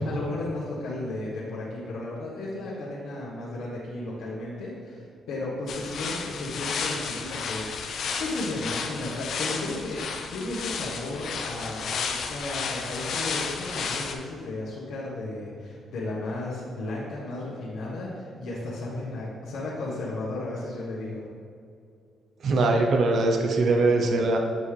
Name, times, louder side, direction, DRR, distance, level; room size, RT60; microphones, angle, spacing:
voice 1, 0.0-21.2, left 2 dB, 80° left, -8 dB, 1.3 m, -34 dB
sound 1, 5.7-14.1, left 5 dB, 65° left, 0.7 m, -32 dB
voice 2, 22.4-24.4, right 2 dB, 60° right, 3 dB, 0.7 m, -22 dB
8.9 x 5.5 x 3.3 m, 2.4 s
cardioid pair, 90°, 0 cm